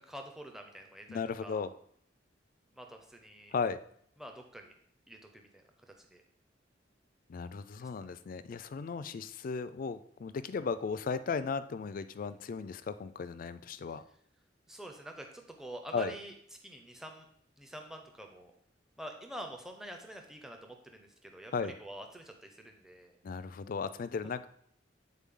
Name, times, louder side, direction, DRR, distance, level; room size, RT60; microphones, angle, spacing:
voice 1, 0.0-1.7 2.7-3.5 4.2-4.7 5.1-6.2 7.8-8.1 14.7-16.3 16.6-17.3 17.6-18.5 19.0-23.2 24.2-24.3, right 1 dB, 5° right, 3 dB, 0.5 m, -47 dB
voice 2, 1.1-1.7 3.5-3.8 7.3-14.0 15.9-16.1 21.5-21.7 23.2-24.5, left 5 dB, 45° left, 13 dB, 0.3 m, -36 dB
8.4 x 4.0 x 3.7 m, 0.67 s
head